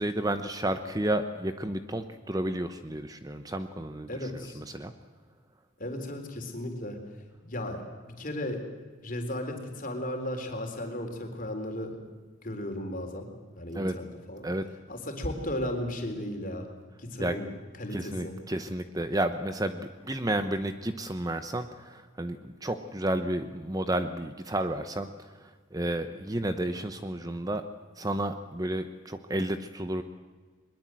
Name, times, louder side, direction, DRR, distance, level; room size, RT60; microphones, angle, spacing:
voice 1, 0.0-4.1 4.5-4.9 13.7-13.9 14.4-14.6 17.2-17.3 17.9-27.6 28.0-30.0, right 1 dB, 20° right, 9 dB, 0.9 m, -31 dB
voice 2, 4.1-4.6 5.8-7.0 7.5-8.6 9.0-12.1 12.4-13.3 13.6-14.5 14.9-16.7 17.0-17.5 17.8-18.4, left 1 dB, 40° left, 4 dB, 3.9 m, -35 dB
21.5 x 21.5 x 7.7 m, 1.4 s
head